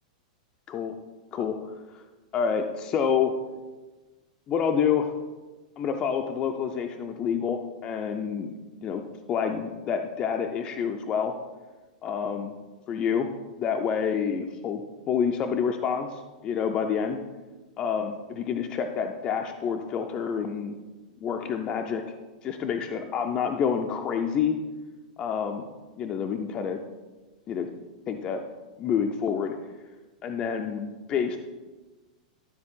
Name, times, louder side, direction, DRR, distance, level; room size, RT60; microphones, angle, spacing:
voice 1, 2.3-3.3 4.5-5.1 5.8-8.5 8.8-9.0 9.3-11.3 12.0-12.5 12.9-13.3 13.6-14.8 15.1-17.2 17.8-20.7 21.2-22.0 22.4-24.6 25.2-25.7 26.0-26.8 27.5-27.7 28.1-28.4 28.8-29.6 30.2-31.4, left 7 dB, 20° left, 4 dB, 0.4 m, -28 dB
12.0 x 4.1 x 3.6 m, 1.2 s
supercardioid pair, 170°, 4 cm